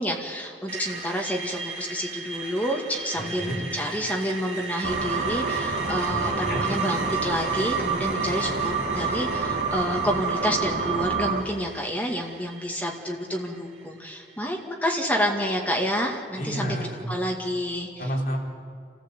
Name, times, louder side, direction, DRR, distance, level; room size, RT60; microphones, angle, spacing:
voice 1, 0.0-17.9, equal, 10° left, 0 dB, 2.2 m, -29 dB
Screech, 0.7-14.6, right 3 dB, 40° right, 3.2 m, -38 dB
voice 2, 3.2-3.6 6.1-6.6 16.4-17.0 18.0-18.4, equal, 55° left, -3 dB, 4.8 m, -30 dB
sound 1, 4.8-11.4, right 4 dB, 55° right, 1.9 m, -27 dB
29.0 x 15.0 x 8.3 m, 2.3 s
head